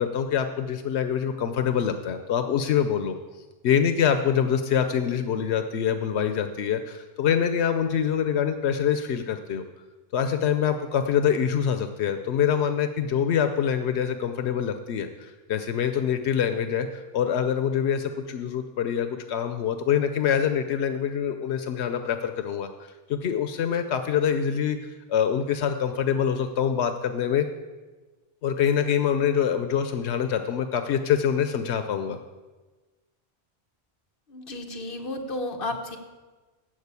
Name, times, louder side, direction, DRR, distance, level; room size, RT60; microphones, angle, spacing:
voice 1, 0.0-3.2 3.6-9.6 10.1-22.7 23.1-24.8 25.1-27.5 28.4-32.2, left 8 dB, 90° left, 8 dB, 1.0 m, -25 dB
voice 2, 34.3-36.0, left 2 dB, 55° left, 3 dB, 1.4 m, -32 dB
14.0 x 5.0 x 8.2 m, 1.3 s
omnidirectional pair, 1.1 m